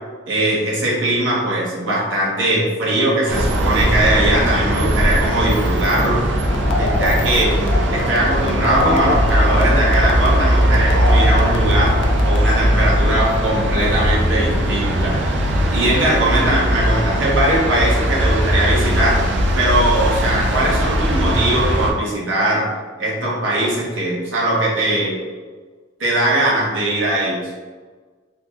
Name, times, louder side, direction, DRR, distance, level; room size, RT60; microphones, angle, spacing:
voice 1, 0.3-6.2 6.7-7.5 7.9-12.0 12.2-15.2 15.7-19.2 19.6-22.7 23.0-25.2 26.0-27.4, right 1 dB, 90° right, -5 dB, 1.1 m, -20 dB
sound 1, 3.3-21.9, equal, 65° right, 0.5 m, -19 dB
sound 2, 6.4-12.6, left 2 dB, 70° left, 0.4 m, -27 dB
3.5 x 3.0 x 2.3 m, 1.4 s
head